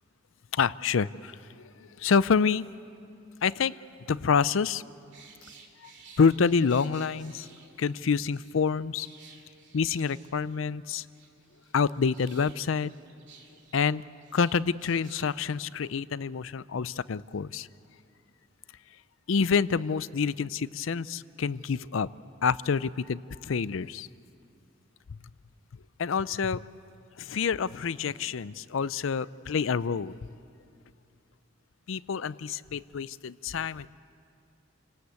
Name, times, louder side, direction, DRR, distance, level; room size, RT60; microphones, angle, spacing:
voice 1, 0.5-1.7 2.0-2.7 3.4-3.8 4.1-4.8 5.8-5.9 6.2-7.5 7.8-9.1 9.7-11.0 11.7-12.9 13.7-14.0 14.3-17.7 19.3-22.1 22.4-24.1 26.0-26.6 27.2-30.2 31.9-33.9, left 5 dB, 75° left, 18 dB, 0.5 m, -27 dB
sound 1, 5.0-8.5 8.9-10.7 11.0-15.3 15.6-15.8, right 5 dB, 65° right, 2.6 m, -55 dB
29.0 x 18.0 x 8.2 m, 2.5 s
head